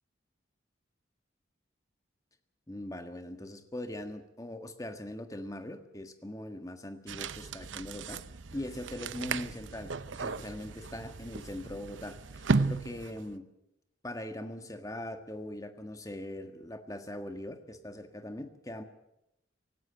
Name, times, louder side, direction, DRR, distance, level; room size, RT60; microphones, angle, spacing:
voice 1, 2.7-8.2 8.5-13.5 14.0-18.8, left 1 dB, 15° left, 7 dB, 1.6 m, -41 dB
sound 1, 7.1-13.3, right 4 dB, 75° right, 0.8 m, -35 dB
17.5 x 17.0 x 9.1 m, 0.85 s
head